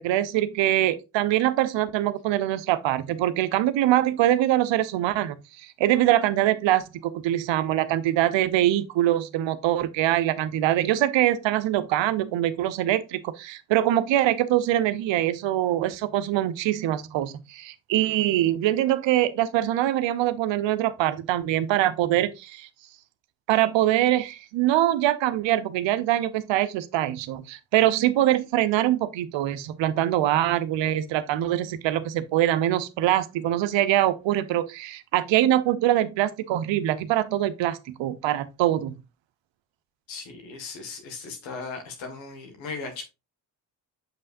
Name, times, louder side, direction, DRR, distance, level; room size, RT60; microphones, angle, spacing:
voice 1, 0.0-5.4 5.8-22.7 23.5-38.9, right 13 dB, 75° right, 0.8 m, -23 dB
voice 2, 40.1-43.0, left 4 dB, 75° left, 1.8 m, -37 dB
7.4 x 5.4 x 2.5 m
hypercardioid pair, 45°, 45 cm